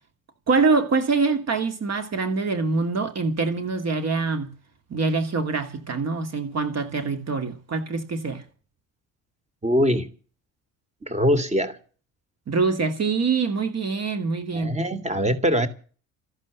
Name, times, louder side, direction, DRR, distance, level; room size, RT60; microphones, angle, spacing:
voice 1, 0.5-4.5 4.9-8.4 12.5-14.7, right 4 dB, 40° right, 2.7 m, -24 dB
voice 2, 9.6-10.1 11.0-11.8 14.5-15.7, equal, 15° right, 3.2 m, -22 dB
14.5 x 12.0 x 6.9 m
figure-of-eight pair, 55°, 40 cm